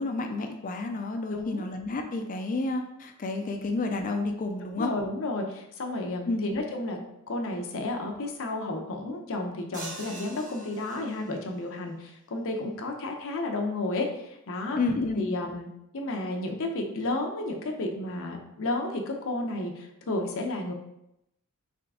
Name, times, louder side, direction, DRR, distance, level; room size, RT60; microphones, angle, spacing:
voice 1, 0.0-4.9 6.3-6.4 14.7-15.3, left 3 dB, 35° left, 5 dB, 0.4 m, -30 dB
voice 2, 1.3-1.7 4.6-7.0 7.3-14.8 15.2-15.7 15.9-20.7, left 2 dB, 65° left, 2 dB, 0.7 m, -32 dB
sound 1, 9.7-11.5, right 2 dB, 35° right, 0.9 m, -43 dB
3.6 x 3.3 x 3.6 m, 0.83 s
head